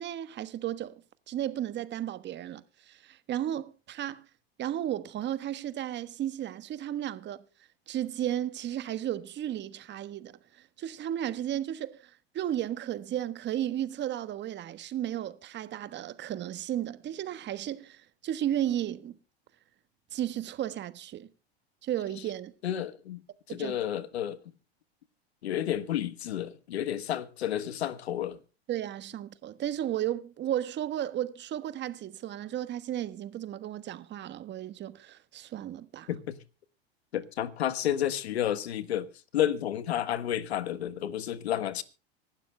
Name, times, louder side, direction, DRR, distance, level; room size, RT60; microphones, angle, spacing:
voice 1, 0.0-4.3 4.6-7.4 7.9-19.1 20.1-21.3 21.8-22.5 23.5-23.8 28.7-36.1, right 11 dB, 35° right, 1.3 m, -34 dB
voice 2, 22.6-23.2 23.5-24.4 25.4-28.4 36.1-36.4 37.1-41.8, left 11 dB, 85° left, 1.4 m, -31 dB
25.0 x 12.0 x 2.2 m
hypercardioid pair, 105°, 31 cm